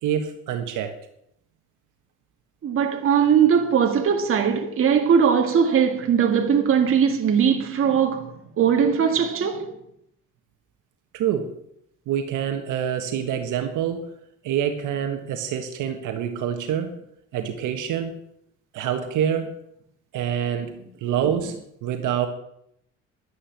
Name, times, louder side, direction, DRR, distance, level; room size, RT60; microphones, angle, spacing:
voice 1, 0.0-1.0 11.1-11.6 12.1-14.2 14.4-17.0 17.3-18.2 18.7-19.6 20.1-22.3, right 9 dB, 75° right, 1.6 m, -26 dB
voice 2, 2.6-9.7, right 7 dB, 45° right, 2.1 m, -20 dB
11.0 x 10.0 x 7.3 m
cardioid pair, 140°, 31 cm